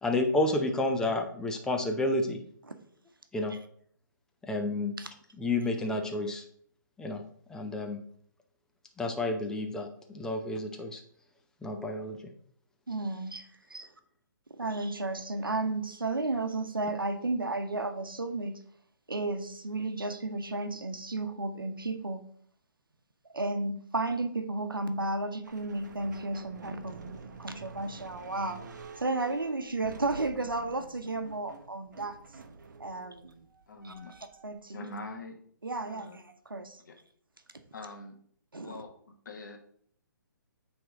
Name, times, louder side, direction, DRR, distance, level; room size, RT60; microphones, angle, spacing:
voice 1, 0.0-2.4 3.3-3.5 4.5-4.9 5.4-6.4 7.0-7.2 7.5-8.0 9.0-11.0 11.6-12.2, left 2 dB, 5° left, 4 dB, 0.6 m, -30 dB
voice 2, 12.9-13.9 14.6-18.6 19.1-22.2 23.3-28.6 29.0-32.2 32.8-33.5 33.8-33.9 34.4-34.9 35.6-36.8 38.5-38.8, right 2 dB, 90° right, 7 dB, 0.9 m, -33 dB
sound 1, 25.4-34.5, right 4 dB, 60° right, 0.8 m, -48 dB
voice 3, 33.7-34.2 34.7-35.4 35.9-36.2 36.8-37.0 37.7-38.1 38.6-39.0 39.2-39.6, left 2 dB, 60° left, 4 dB, 1.3 m, -43 dB
8.6 x 3.6 x 3.7 m, 0.62 s
figure-of-eight pair, 135°, 11 cm